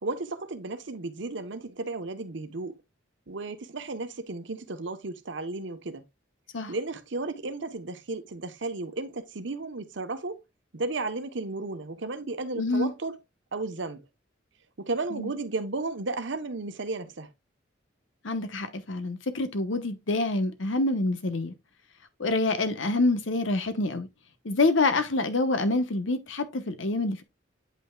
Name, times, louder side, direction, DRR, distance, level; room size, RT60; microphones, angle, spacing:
voice 1, 0.0-2.7 3.3-6.0 6.7-10.4 10.7-13.2 13.5-14.0 14.8-17.3, right 3 dB, 70° right, 0.9 m, -34 dB
voice 2, 12.6-12.9 15.1-15.3 18.2-21.5 22.2-24.1 24.4-27.2, left 2 dB, 80° left, 1.0 m, -26 dB
8.6 x 5.6 x 2.3 m
head